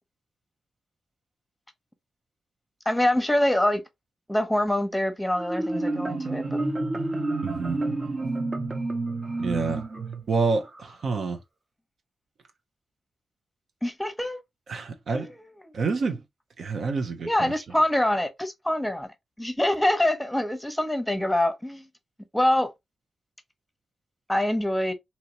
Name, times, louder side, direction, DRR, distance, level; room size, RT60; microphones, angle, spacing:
voice 1, 2.9-3.8 4.3-6.6 13.8-14.4 15.1-15.2 17.2-19.1 19.4-21.8 22.3-22.7 24.3-24.9, left 1 dB, 10° left, 0.8 m, -25 dB
Marimba xylophone, 5.4-10.9, right 2 dB, 40° right, 0.9 m, -29 dB
voice 2, 7.4-7.8 9.4-9.9 10.3-11.4 14.7-15.3 15.7-16.2 16.6-17.6, right 4 dB, 75° right, 0.7 m, -28 dB
2.9 x 2.8 x 2.8 m
cardioid pair, 55°, 0 cm